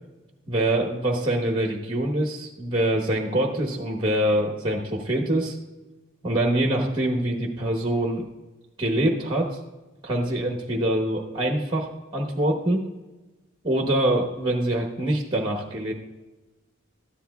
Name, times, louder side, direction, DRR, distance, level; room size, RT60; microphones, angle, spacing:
voice 1, 0.5-5.6 6.2-8.2 8.8-9.6 10.0-12.8 13.6-15.9, right 1 dB, 20° right, 2 dB, 1.0 m, -24 dB
13.0 x 10.0 x 2.3 m, 1.1 s
head